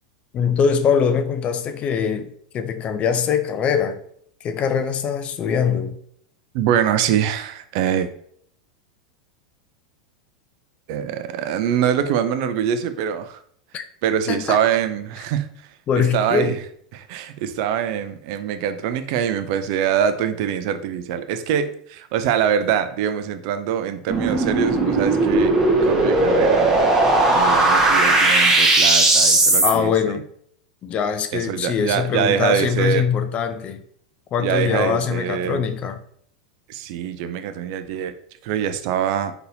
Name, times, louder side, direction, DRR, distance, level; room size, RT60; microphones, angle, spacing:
voice 1, 0.3-4.0 4.4-6.0 13.7-13.8 14.3-14.6 15.9-16.6 29.6-30.3 30.8-33.8 34.3-36.0, left 7 dB, 35° left, 0.3 m, -22 dB
voice 2, 6.5-8.1 10.9-13.4 14.0-15.5 16.1-16.6 16.9-26.8 27.3-30.2 31.3-33.0 34.4-35.6 36.7-38.1 38.4-39.3, right 8 dB, 55° right, 0.4 m, -24 dB
sound 1, 24.1-29.7, right 2 dB, 15° right, 0.9 m, -17 dB
3.8 x 2.8 x 2.6 m
hypercardioid pair, 95°, 4 cm